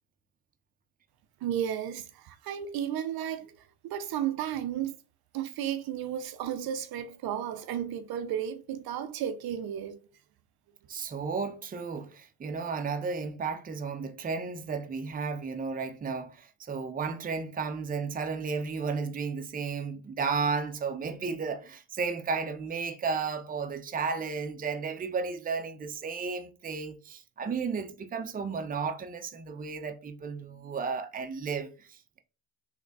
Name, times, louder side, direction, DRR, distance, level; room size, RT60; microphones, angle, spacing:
voice 1, 1.4-5.0 5.3-10.0, right 10 dB, 65° right, 0.6 m, -33 dB
voice 2, 10.9-32.2, right 5 dB, 20° right, 0.6 m, -33 dB
3.2 x 2.2 x 3.8 m
supercardioid pair, 65°, 40 cm